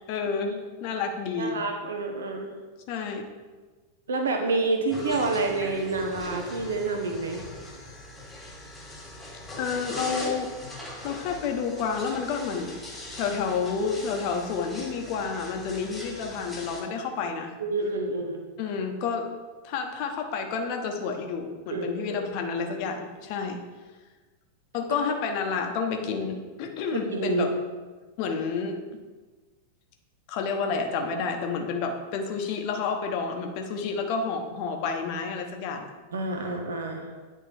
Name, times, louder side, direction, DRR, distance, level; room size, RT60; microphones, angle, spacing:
voice 1, 0.1-1.6 2.9-3.3 9.6-10.5 11.0-12.8 13.1-17.5 18.6-19.3 19.6-23.6 24.7-27.5 28.2-28.8 30.3-35.9, left 5 dB, 45° left, 4 dB, 0.9 m, -30 dB
voice 2, 1.3-2.5 4.1-7.4 17.6-18.4 21.7-22.2 26.9-27.5 36.1-37.1, right 3 dB, 65° right, 3 dB, 0.9 m, -28 dB
sound 1, 4.9-16.8, left 1 dB, 5° left, 1.9 m, -40 dB
9.3 x 3.6 x 4.4 m, 1.4 s
figure-of-eight pair, 90°, 0 cm